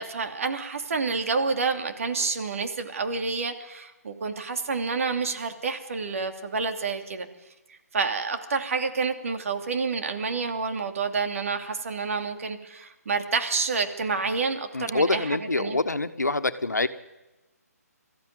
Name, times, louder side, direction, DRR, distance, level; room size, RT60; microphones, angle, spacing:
voice 1, 0.0-7.3 7.7-15.8, right 4 dB, 55° right, 6 dB, 2.8 m, -29 dB
voice 2, 14.7-16.9, left 2 dB, 90° left, 11 dB, 1.4 m, -25 dB
22.0 x 14.5 x 9.5 m, 1.0 s
figure-of-eight pair, 145°, 9 cm